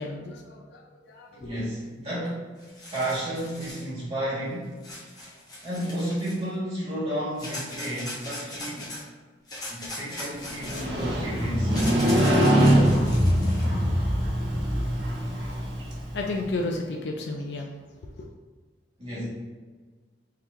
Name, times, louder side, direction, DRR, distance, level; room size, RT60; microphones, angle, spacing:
voice 1, 0.0-1.6 16.1-18.3, left 2 dB, 70° left, 1 dB, 0.4 m, -33 dB
voice 2, 1.3-2.4 2.9-4.7 5.2-9.0 9.7-11.8 19.0-19.2, right 1 dB, 35° right, -8 dB, 1.3 m, -32 dB
sound 1, 2.3-2.4 2.6-3.9 4.8-6.5 7.4-9.0 9.5-13.7, left 1 dB, 20° left, 0.9 m, -39 dB
Motorcycle, 10.5-16.4, equal, 65° right, 1.1 m, -23 dB
3.8 x 2.9 x 3.2 m, 1.5 s
head